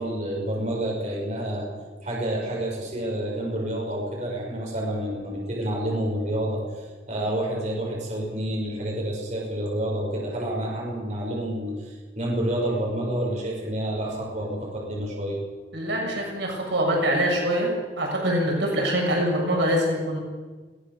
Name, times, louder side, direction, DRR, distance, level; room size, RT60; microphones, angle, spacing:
voice 1, 0.0-1.7 2.0-15.4, right 1 dB, 40° right, -2 dB, 6.2 m, -29 dB
voice 2, 15.7-17.7 18.0-20.2, equal, 70° right, -1 dB, 6.8 m, -24 dB
22.5 x 18.0 x 7.0 m, 1.4 s
head